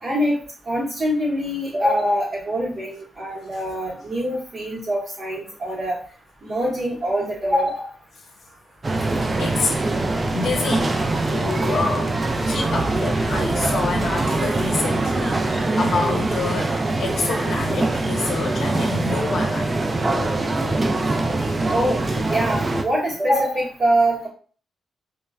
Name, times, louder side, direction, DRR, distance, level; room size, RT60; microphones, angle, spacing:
voice 1, 0.0-0.4 0.7-6.0 6.4-7.8 21.7-22.0 22.3-24.3, equal, 45° right, -8 dB, 0.8 m, -23 dB
sound 1, 8.8-22.8, right 2 dB, 25° right, 0.3 m, -23 dB
voice 2, 9.1-9.8 10.3-12.1 12.4-19.7 21.1-21.2, left 4 dB, 65° left, 2 dB, 0.6 m, -28 dB
3.1 x 2.1 x 2.3 m, 0.42 s
cardioid pair, 120°, 0 cm